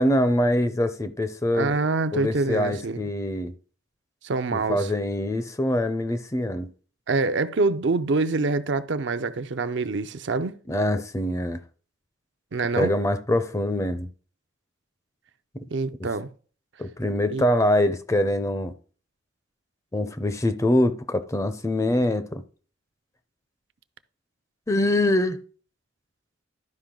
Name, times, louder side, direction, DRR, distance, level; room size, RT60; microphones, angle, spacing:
voice 1, 0.0-1.8 2.1-3.5 4.5-6.7 10.7-11.6 12.7-14.1 15.5-15.6 16.8-18.7 19.9-22.4 24.7-25.4, left 1 dB, 15° left, 0.5 m, -24 dB
voice 2, 1.6-3.0 4.2-4.9 7.1-10.6 12.5-12.9 15.7-16.3 17.3-17.4, right 3 dB, 65° right, 0.6 m, -25 dB
12.0 x 5.2 x 3.8 m
head